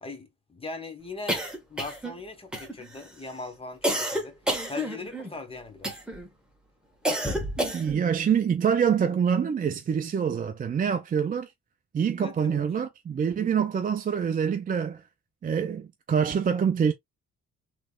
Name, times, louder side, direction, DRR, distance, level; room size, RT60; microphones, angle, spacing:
voice 1, 0.0-1.4 1.7-4.4 4.7-6.0 12.1-12.7, left 3 dB, 20° left, 1.1 m, -40 dB
sound 1, 1.3-2.2 2.5-3.0 3.8-5.3 5.8-6.3 7.0-8.1, right 1 dB, 5° right, 1.3 m, -29 dB
voice 2, 7.6-11.5 11.9-15.0 15.4-16.9, right 7 dB, 30° right, 0.4 m, -25 dB
3.4 x 3.1 x 2.4 m
cardioid pair, 90°, 30 cm